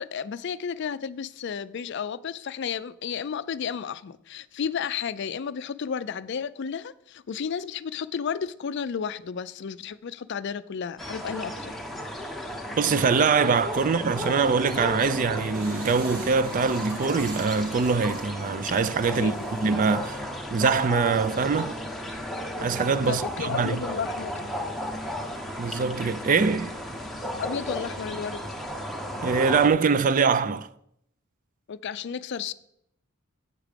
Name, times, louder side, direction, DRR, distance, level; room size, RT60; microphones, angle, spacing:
voice 1, 0.0-11.7 19.1-19.5 23.1-24.3 27.4-28.5 31.7-32.5, left 7 dB, 55° left, 0.4 m, -32 dB
sound 1, 11.0-29.7, equal, ahead, 0.8 m, -34 dB
voice 2, 12.8-20.2 20.5-21.8 22.6-23.8 25.6-26.8 29.2-30.7, right 5 dB, 40° right, 0.4 m, -23 dB
sound 2, 14.9-20.0, right 3 dB, 75° right, 1.3 m, -42 dB
8.2 x 6.1 x 5.1 m
head